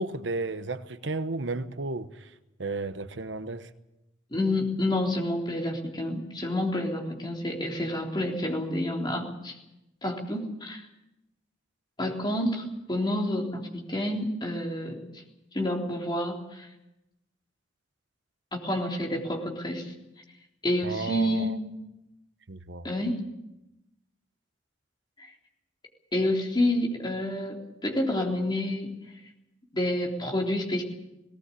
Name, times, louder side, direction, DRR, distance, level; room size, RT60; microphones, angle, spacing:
voice 1, 0.0-2.1 2.6-3.7 20.8-21.5 22.5-22.9, right 2 dB, 70° right, 1.0 m, -33 dB
voice 2, 4.3-9.6 10.0-10.9 12.0-15.2 15.5-16.7 18.5-19.9 20.6-21.5 22.8-23.2 25.2-25.3 26.1-28.9 29.7-30.8, left 1 dB, 25° left, 3.6 m, -29 dB
19.0 x 18.0 x 8.4 m
head